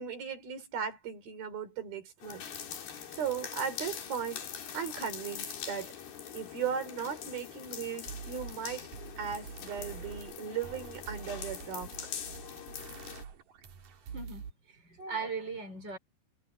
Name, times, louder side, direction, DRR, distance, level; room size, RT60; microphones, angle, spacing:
voice 1, 0.0-2.5 3.1-4.5 4.7-5.9 6.3-8.8 9.2-11.9, right 7 dB, 80° right, 6.1 m, -37 dB
sound 1, 2.2-13.3, left 8 dB, 90° left, 4.8 m, -43 dB
sound 2, 7.6-7.7 8.1-14.5, right 7 dB, 65° right, 3.8 m, -46 dB
voice 2, 14.1-16.0, right 4 dB, 30° right, 5.0 m, -39 dB
omnidirectional pair, 4.2 m